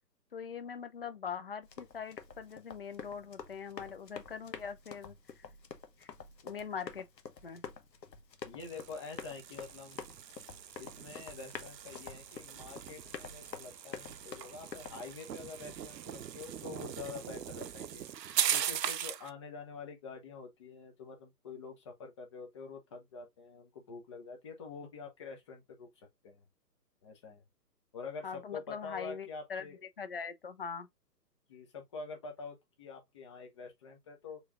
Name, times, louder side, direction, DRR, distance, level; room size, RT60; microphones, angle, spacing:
voice 1, 0.3-5.2 6.0-6.1 6.4-7.1 7.4-7.6 28.2-29.7 30.0-30.9, left 6 dB, 40° left, 0.4 m, -42 dB
Run, 1.6-15.0, left 6 dB, 85° left, 1.1 m, -48 dB
voice 2, 8.4-10.0 10.8-18.1 18.5-26.4 27.0-27.4 27.9-29.8 31.5-34.4, left 5 dB, 20° left, 0.8 m, -46 dB
sound 1, 8.6-19.3, right 9 dB, 80° right, 0.7 m, -39 dB
5.0 x 3.2 x 2.5 m
hypercardioid pair, 150°, 49 cm